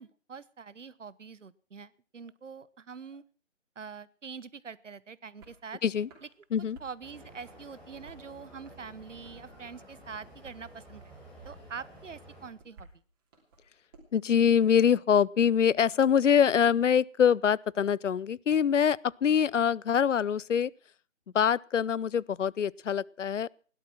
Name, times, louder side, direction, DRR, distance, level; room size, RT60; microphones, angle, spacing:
voice 1, 0.0-3.2 3.8-5.8 6.8-11.0 11.4-12.9, right 5 dB, 75° right, 1.1 m, -44 dB
sound 1, 5.4-5.6 6.0-7.0 7.4-8.3 8.7-9.6 9.9-10.6 11.0-11.6 12.0-14.0, right 3 dB, 20° right, 3.1 m, -56 dB
sound 2, 7.0-12.5, right 1 dB, 5° left, 2.2 m, -51 dB
voice 2, 14.1-20.7 21.3-23.5, left 8 dB, 75° left, 0.6 m, -24 dB
17.0 x 11.5 x 6.1 m
figure-of-eight pair, 165°, 38 cm